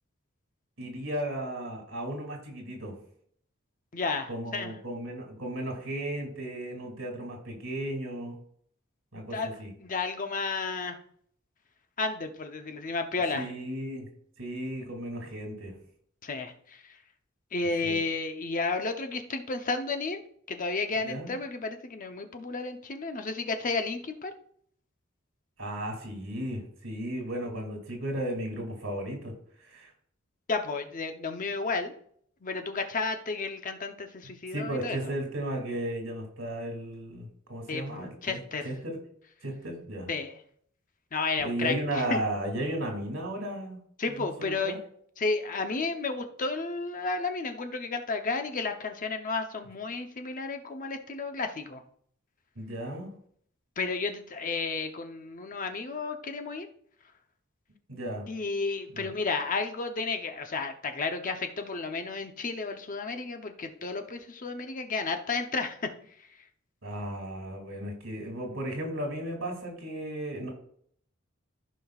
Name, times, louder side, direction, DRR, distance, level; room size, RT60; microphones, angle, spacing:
voice 1, 0.8-3.0 4.3-8.4 9.1-9.7 13.3-14.1 14.4-15.7 17.8-18.0 21.0-21.3 25.6-29.3 29.6-29.9 34.5-39.0 39.4-40.1 41.4-43.8 44.1-44.8 52.6-53.1 57.9-58.3 58.9-59.1 66.8-70.5, right 1 dB, 75° right, 1 dB, 2.5 m, -35 dB
voice 2, 3.9-4.7 9.3-9.5 9.8-11.0 12.0-13.5 16.2-16.5 17.5-20.2 20.5-24.3 30.5-31.9 32.4-35.1 37.7-38.7 40.1-40.3 41.1-41.7 42.1-42.2 44.0-44.8 45.2-51.8 53.8-56.7 58.3-65.8, left 3 dB, 40° left, 6 dB, 0.8 m, -32 dB
15.0 x 5.2 x 2.4 m, 0.64 s
head